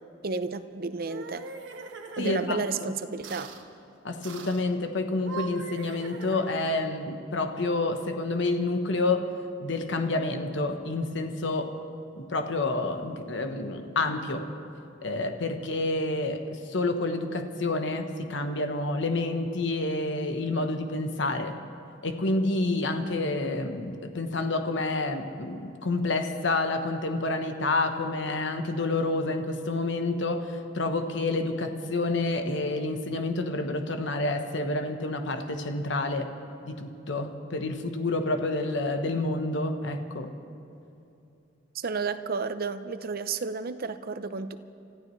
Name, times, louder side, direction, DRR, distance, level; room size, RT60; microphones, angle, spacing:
voice 1, 0.2-1.5 2.2-3.5 41.7-44.6, right 4 dB, 50° right, 11 dB, 0.6 m, -32 dB
sound 1, 0.9-2.6 3.2-3.6 4.2-4.7 5.1-6.9, right 4 dB, 70° right, 1.2 m, -41 dB
voice 2, 2.2-2.9 4.0-9.3 9.6-11.8 12.2-14.5 15.0-21.5 22.0-36.3 36.6-40.3, left 2 dB, 70° left, 6 dB, 1.0 m, -29 dB
29.5 x 14.5 x 3.2 m, 2.7 s
head